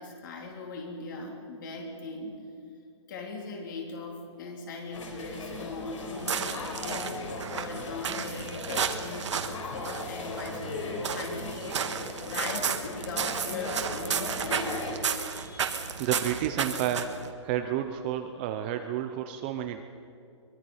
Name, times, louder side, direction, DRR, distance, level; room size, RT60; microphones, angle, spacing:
voice 1, 0.0-2.4 3.1-15.9 16.2-16.3, left 3 dB, 40° left, 2 dB, 3.6 m, -40 dB
sound 1, 4.9-15.0, left 3 dB, 85° left, 4.4 m, -38 dB
sound 2, 6.1-17.3, right 7 dB, 65° right, 1.7 m, -33 dB
voice 2, 16.0-17.1 17.4-19.8, right 10 dB, 20° right, 7 dB, 0.6 m, -30 dB
23.0 x 22.5 x 5.6 m, 2.4 s
hypercardioid pair, 170°, 16 cm